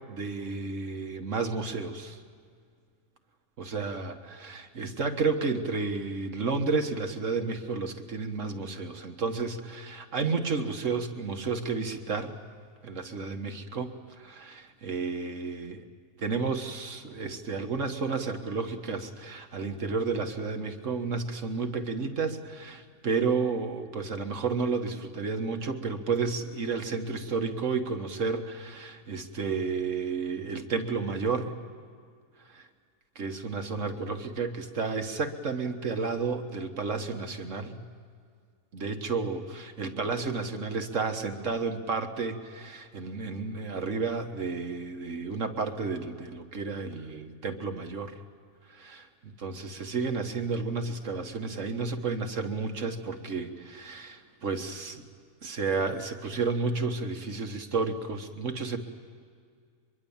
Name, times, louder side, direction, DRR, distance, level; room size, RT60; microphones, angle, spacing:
voice 1, 0.1-2.2 3.6-12.3 12.8-15.8 16.2-31.6 32.5-32.7 33.2-37.8 38.7-48.2 48.7-49.1 49.4-55.0 55.4-58.8, right 4 dB, 60° right, 6 dB, 1.8 m, -31 dB
23.5 x 23.5 x 7.2 m, 2.1 s
omnidirectional pair, 1.5 m